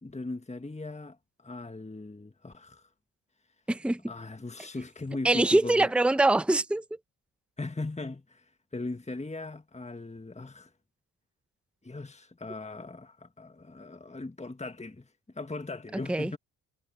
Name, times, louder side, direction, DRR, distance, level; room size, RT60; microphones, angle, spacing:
voice 1, 0.0-2.8 4.1-5.9 7.6-8.4 8.7-10.7 11.8-15.1 15.3-16.4, left 2 dB, 15° left, 1.7 m, -39 dB
voice 2, 3.7-4.0 5.2-6.8 16.1-16.3, right 2 dB, 5° right, 0.9 m, -23 dB
supercardioid pair, 50°, 43 cm